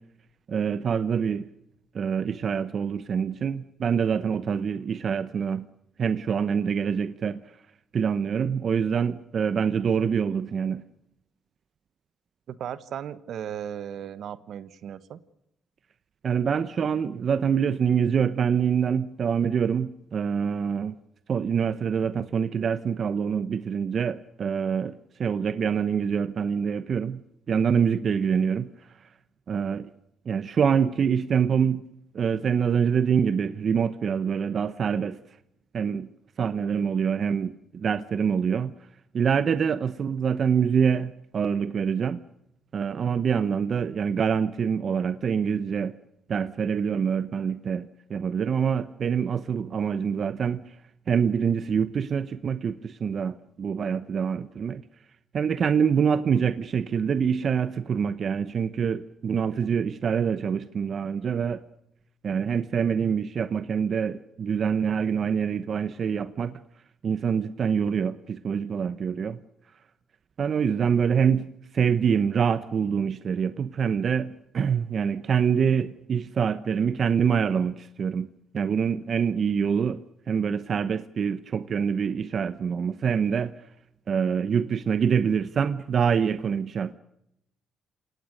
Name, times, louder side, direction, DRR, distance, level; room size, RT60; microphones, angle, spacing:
voice 1, 0.5-1.5 1.9-5.7 6.0-7.4 7.9-10.8 16.2-20.9 21.3-24.9 25.2-27.2 27.5-28.7 29.5-29.9 30.3-31.8 32.1-35.2 35.7-36.1 36.4-38.7 39.1-42.2 42.7-46.0 46.3-50.7 51.1-54.8 55.3-61.6 62.2-66.5 67.0-69.4 70.4-78.3 78.5-80.0 80.3-83.5 84.1-86.9, right 7 dB, 50° right, 0.9 m, -25 dB
voice 2, 12.5-15.2, right 9 dB, 70° right, 1.2 m, -36 dB
27.5 x 18.0 x 6.5 m
cardioid pair, 90°, 0 cm